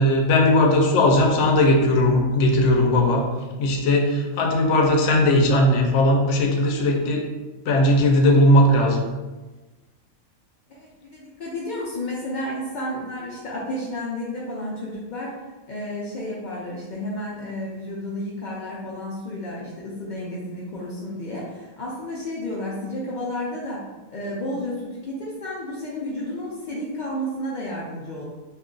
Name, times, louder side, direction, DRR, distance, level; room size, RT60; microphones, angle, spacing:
voice 1, 0.0-3.2 3.6-7.2 7.7-9.0, left 1 dB, 65° left, 1 dB, 0.8 m, -18 dB
voice 2, 10.7-28.2, left 1 dB, 85° left, -6 dB, 0.4 m, -32 dB
2.5 x 2.3 x 3.7 m, 1.2 s
omnidirectional pair, 1.4 m